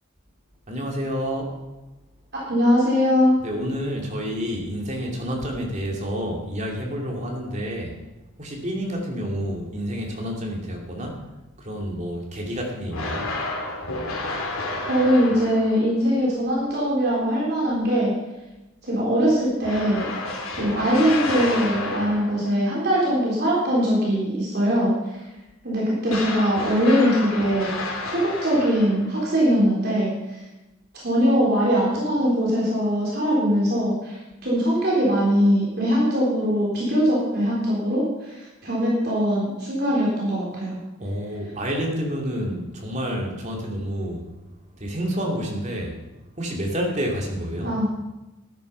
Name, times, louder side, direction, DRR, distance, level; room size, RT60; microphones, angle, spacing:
voice 1, 0.7-1.5 3.4-8.0 8.4-11.2 11.6-13.3 41.0-44.3 44.8-46.0 46.4-47.7, equal, 35° right, 0 dB, 2.6 m, -29 dB
voice 2, 2.3-3.3 14.9-18.1 18.8-20.1 20.5-25.2 25.6-30.4 30.9-34.2 34.4-40.8 47.6-47.9, equal, 50° right, -6 dB, 3.9 m, -21 dB
sound 1, 12.9-15.9 19.6-22.5 26.1-29.2, left 2 dB, 85° left, 2.7 m, -30 dB
13.0 x 10.5 x 5.5 m, 1.0 s
head